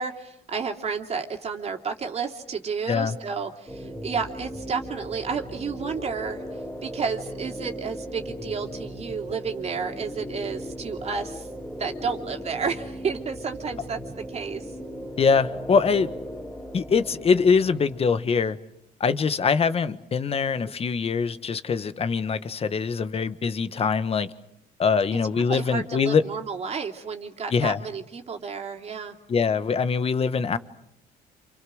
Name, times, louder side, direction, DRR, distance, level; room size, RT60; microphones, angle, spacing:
voice 1, 0.0-6.4 6.8-11.5 11.8-14.6 25.5-29.1, right 5 dB, 40° right, 3.1 m, -31 dB
sound 1, 3.7-18.1, equal, 10° left, 4.0 m, -37 dB
voice 2, 15.2-16.1 16.7-18.6 19.0-24.3 24.8-26.2 27.5-27.8 29.3-30.6, left 5 dB, 35° left, 1.4 m, -23 dB
29.5 x 28.0 x 6.4 m
cardioid pair, 110°, 17 cm